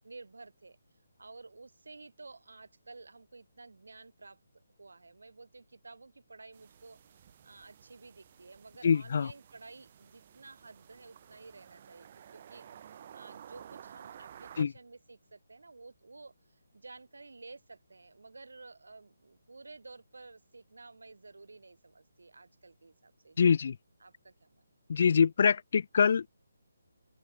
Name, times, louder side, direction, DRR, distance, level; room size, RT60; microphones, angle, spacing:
voice 1, 0.0-0.8 1.2-23.6 24.0-24.7, right 3 dB, 80° right, 2.5 m, -52 dB
sound 1, 6.5-14.6, right 9 dB, 35° right, 1.3 m, -53 dB
voice 2, 8.8-9.3 14.6-14.7 23.4-23.8 24.9-26.3, left 6 dB, 50° left, 0.4 m, -24 dB
open air
figure-of-eight pair, 160°, 0 cm